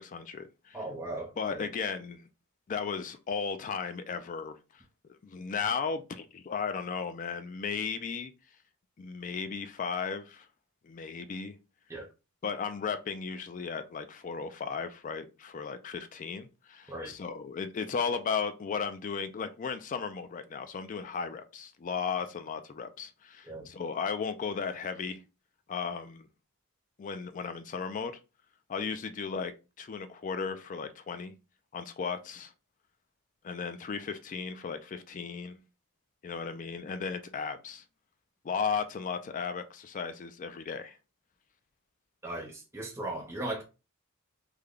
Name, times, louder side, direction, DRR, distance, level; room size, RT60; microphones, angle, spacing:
voice 1, 0.0-0.8 1.4-2.2 2.7-4.8 5.2-8.3 9.0-10.5 10.8-11.6 12.4-25.2 25.7-26.3 27.0-28.2 28.7-29.5 29.8-31.3 31.7-32.5 33.4-35.6 36.2-37.8 38.4-41.0, left 5 dB, 35° left, 0.3 m, -35 dB
voice 2, 0.7-1.3 1.6-1.7 11.9-12.1 16.9-17.1 23.5-23.7 42.2-43.6, right 1 dB, 10° right, 0.6 m, -37 dB
3.2 x 2.2 x 3.6 m
head